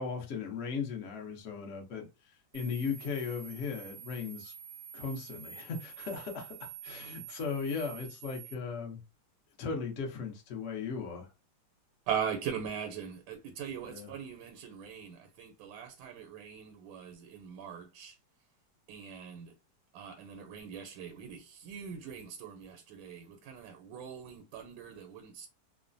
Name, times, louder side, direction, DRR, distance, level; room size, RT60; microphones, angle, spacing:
voice 1, 0.0-2.1 2.5-4.5 4.9-9.0 9.6-11.3 13.8-14.1, left 5 dB, 60° left, 0.8 m, -37 dB
sound 1, 2.5-8.5, right 8 dB, 45° right, 0.7 m, -48 dB
voice 2, 12.1-18.2 18.9-19.5 19.9-25.5, right 7 dB, 85° right, 1.3 m, -40 dB
3.1 x 2.1 x 2.5 m
omnidirectional pair, 2.1 m